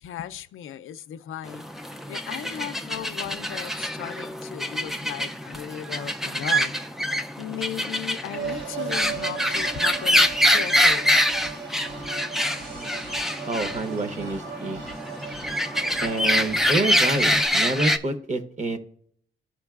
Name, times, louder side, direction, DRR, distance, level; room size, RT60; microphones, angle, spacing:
voice 1, 0.0-1.7 2.1-6.9 7.4-11.1, left 10 dB, 80° left, 0.4 m, -36 dB
sound 1, 1.5-18.0, equal, ahead, 0.3 m, -25 dB
sound 2, 8.3-17.5, right 6 dB, 65° right, 1.8 m, -37 dB
voice 2, 13.5-14.8 16.0-18.8, right 2 dB, 35° right, 0.8 m, -27 dB
14.0 x 5.3 x 2.3 m
wide cardioid pair, 150°, 21 cm